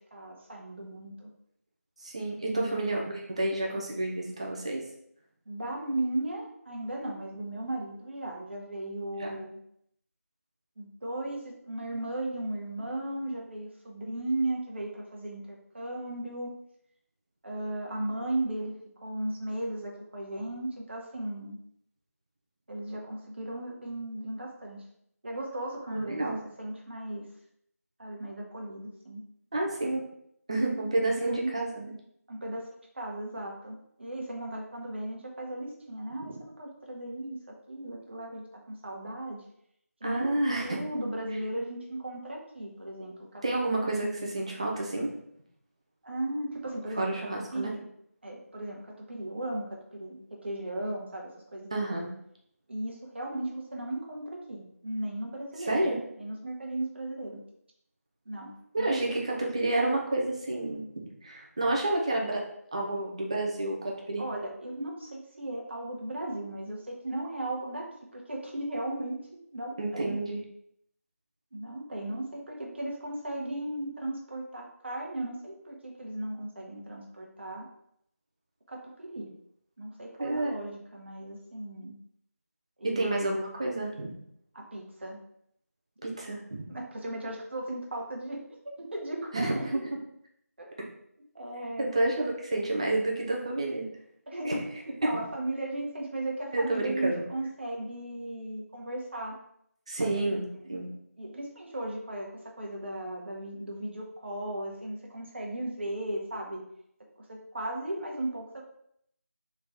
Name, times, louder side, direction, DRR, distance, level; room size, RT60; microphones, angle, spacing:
voice 1, 0.1-1.3 2.4-3.0 5.5-9.6 10.8-16.5 17.4-18.7 19.0-21.6 22.7-24.8 25.2-27.3 28.0-29.2 30.5-30.9 31.1-31.5 32.3-32.7 32.9-39.4 40.0-40.3 40.6-43.4 43.8-44.2 46.0-47.9 48.2-52.0 52.7-55.9 56.2-57.4 58.2-59.2 64.2-70.2 71.5-77.7 78.7-79.3 79.8-81.9 82.8-83.4 84.5-85.2 86.7-89.7 90.6-90.7 91.3-92.0 94.3-94.6 95.0-99.4 100.0-100.8 101.2-106.6 107.2-108.6, right 1 dB, 45° right, -1 dB, 1.0 m, -36 dB
voice 2, 2.0-4.8 9.2-9.3 25.9-26.4 29.5-30.0 30.5-31.9 40.0-40.8 43.4-45.1 47.0-47.7 51.7-52.1 55.6-56.0 58.7-60.8 61.2-62.5 62.7-64.2 69.8-70.4 80.2-80.5 82.8-84.1 86.0-86.7 89.3-90.0 91.8-93.9 94.4-94.5 95.0-95.2 96.5-97.2 99.9-100.9, right 2 dB, 20° right, -1 dB, 0.6 m, -29 dB
3.8 x 3.5 x 3.5 m, 0.72 s
figure-of-eight pair, 170°, 9 cm